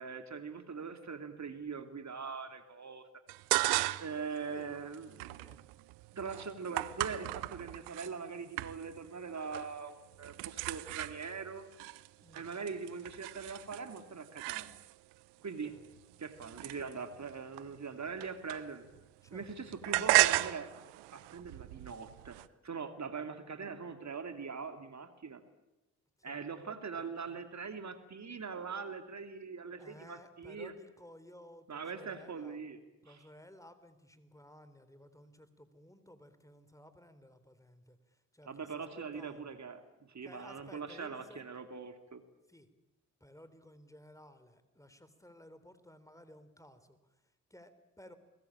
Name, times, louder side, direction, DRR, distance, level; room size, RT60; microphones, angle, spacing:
voice 1, 0.0-3.0 4.0-5.4 6.1-11.7 12.3-14.8 15.4-15.7 16.2-18.9 19.3-20.7 21.1-22.4 22.6-25.4 26.2-30.7 31.7-32.8 33.1-33.2 38.5-42.2, right 5 dB, 40° right, 8 dB, 2.8 m, -42 dB
sound 1, 3.3-4.2 4.6-8.1 8.6-9.1 9.3-9.8 10.1-15.1 15.8-19.0 19.3-22.5, right 20 dB, 75° right, 0.9 m, -35 dB
voice 2, 19.2-19.8 26.2-26.4 26.9-27.4 29.8-32.6 33.0-39.6 40.2-41.4 42.5-42.7 43.2-47.0 47.5-48.1, equal, 10° left, 12 dB, 3.7 m, -56 dB
29.5 x 21.5 x 8.8 m, 0.99 s
hypercardioid pair, 40°, 41 cm